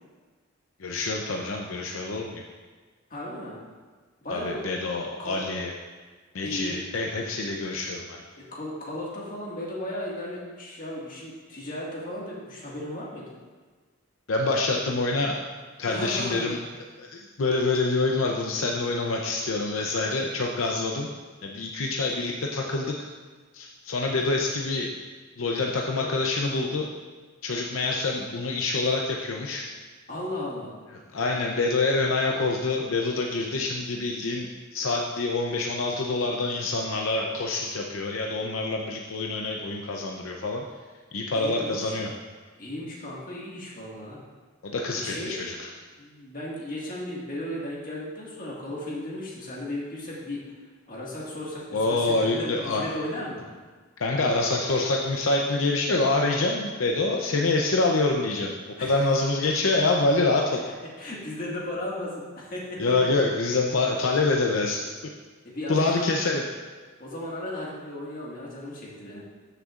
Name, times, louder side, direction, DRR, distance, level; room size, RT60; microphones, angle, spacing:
voice 1, 0.8-2.4 4.3-5.7 6.3-8.2 14.3-15.4 15.8-16.6 17.0-21.1 21.4-22.9 23.5-24.9 25.4-26.9 27.4-29.7 31.1-40.6 41.1-42.1 44.6-45.7 51.7-53.0 54.0-58.5 58.8-60.6 62.8-64.8 65.7-66.5, left 3 dB, 75° left, 0 dB, 0.6 m, -26 dB
voice 2, 3.1-3.6 4.2-4.7 5.2-5.5 6.4-6.8 8.4-13.3 15.9-16.5 30.1-30.7 41.3-42.0 42.6-44.2 44.9-45.4 46.0-50.4 50.9-53.4 58.8-59.0 61.0-62.8 65.4-66.1 67.0-69.3, left 1 dB, 40° left, -4 dB, 1.8 m, -35 dB
13.5 x 6.6 x 2.5 m, 1.4 s
head